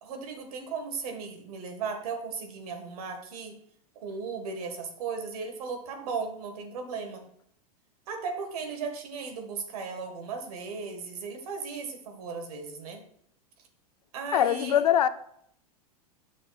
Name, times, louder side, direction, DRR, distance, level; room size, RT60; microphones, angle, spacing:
voice 1, 0.0-3.6 4.0-7.2 8.1-13.0 14.1-14.8, right 5 dB, 75° right, 1.6 m, -36 dB
voice 2, 14.3-15.1, left 10 dB, 85° left, 0.5 m, -22 dB
8.5 x 6.2 x 2.4 m
hypercardioid pair, 110°, 19 cm